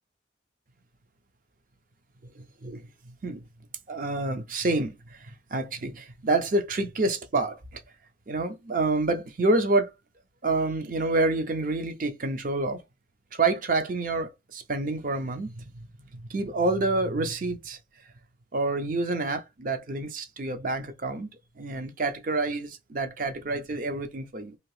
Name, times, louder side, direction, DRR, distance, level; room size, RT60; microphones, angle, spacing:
voice 1, 2.4-3.4 3.9-7.8 8.3-9.9 10.4-12.8 13.3-15.6 16.1-17.8 18.5-21.3 21.6-24.6, right 2 dB, 45° right, 0.6 m, -28 dB
2.8 x 2.8 x 3.1 m
head